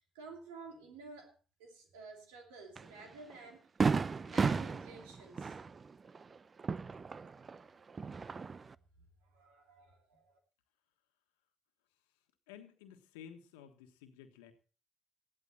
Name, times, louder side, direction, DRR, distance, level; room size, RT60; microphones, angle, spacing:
voice 1, 0.1-1.3 1.6-3.7 4.2-5.6 9.2-10.4, right 3 dB, 85° right, 2.7 m, -52 dB
Fireworks, 2.8-2.9 3.3-3.4 3.8-7.6 7.9-8.7, right 5 dB, 40° right, 0.5 m, -34 dB
voice 2, 12.5-14.5, left 8 dB, 85° left, 1.4 m, -53 dB
15.0 x 11.5 x 4.2 m
hypercardioid pair, 50°, 0 cm